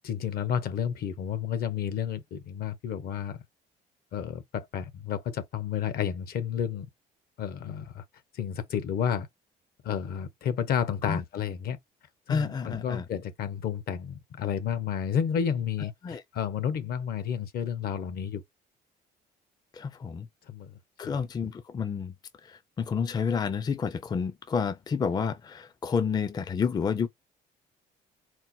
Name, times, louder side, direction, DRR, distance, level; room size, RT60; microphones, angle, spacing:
voice 1, 0.0-3.4 4.1-6.9 7.4-8.0 8.3-9.3 9.8-11.8 12.3-18.4 20.5-20.8 21.0-21.2, left 8 dB, 65° left, 1.0 m, -31 dB
voice 2, 12.3-13.0 16.0-16.2 19.8-20.3 21.0-22.1 22.8-27.1, left 6 dB, 25° left, 0.4 m, -29 dB
4.3 x 2.1 x 4.2 m
cardioid pair, 110°, 17 cm